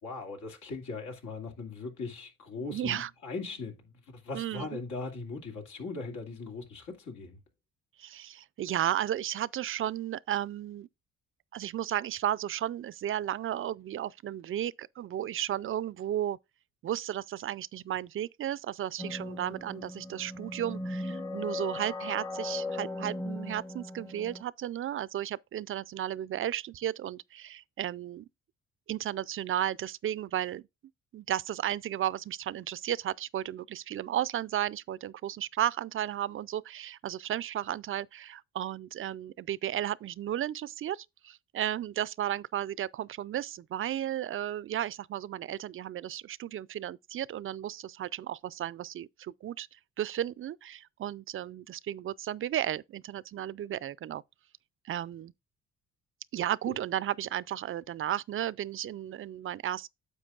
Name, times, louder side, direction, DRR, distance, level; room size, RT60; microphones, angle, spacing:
voice 1, 0.0-7.4 56.7-56.8, left 3 dB, 80° left, 2.4 m, -39 dB
voice 2, 2.6-3.1 4.3-4.8 8.0-10.9 11.5-16.4 16.8-28.3 28.9-30.6 31.1-54.2 54.8-55.3 56.3-59.9, right 11 dB, 45° right, 0.4 m, -34 dB
sound 1, 19.0-24.4, left 2 dB, 10° left, 0.8 m, -38 dB
9.8 x 7.2 x 2.4 m
cardioid pair, 90°, 30 cm